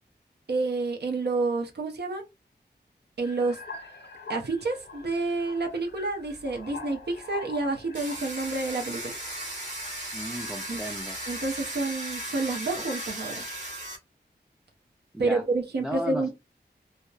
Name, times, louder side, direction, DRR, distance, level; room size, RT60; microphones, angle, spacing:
voice 1, 0.5-2.2 3.2-3.6 4.3-9.2 10.7-10.8 11.3-13.5 15.2-16.3, right 3 dB, 70° right, 0.6 m, -29 dB
sound 1, 3.2-8.5 9.1-9.5, left 4 dB, 75° left, 0.5 m, -44 dB
Domestic sounds home sounds, 7.9-14.0, right 1 dB, 45° right, 1.3 m, -36 dB
voice 2, 10.1-11.2 15.1-15.4 15.8-16.3, equal, 5° right, 0.4 m, -35 dB
2.8 x 2.0 x 2.3 m
wide cardioid pair, 95°, 18 cm